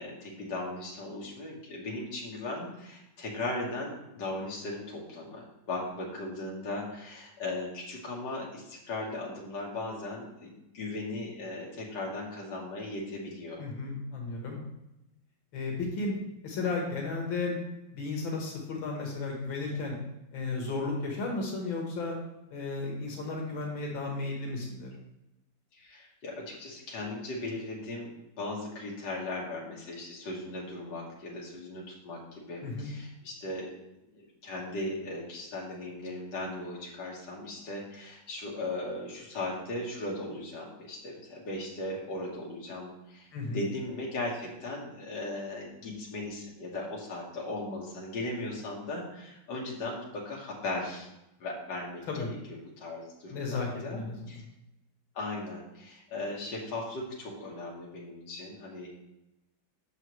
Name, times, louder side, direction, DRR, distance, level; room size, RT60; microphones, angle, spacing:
voice 1, 0.0-13.6 25.7-33.7 34.1-51.1 51.4-54.0 54.3-54.4 55.1-58.9, left 2 dB, 65° left, -3 dB, 2.1 m, -38 dB
voice 2, 13.6-14.6 15.5-16.1 16.4-17.6 17.9-19.9 20.3-22.2 22.5-25.0 32.6-32.9 43.3-43.6 52.1-52.3 53.3-54.4, left 3 dB, 85° left, -1 dB, 2.2 m, -34 dB
7.7 x 6.5 x 3.1 m, 0.88 s
omnidirectional pair, 2.1 m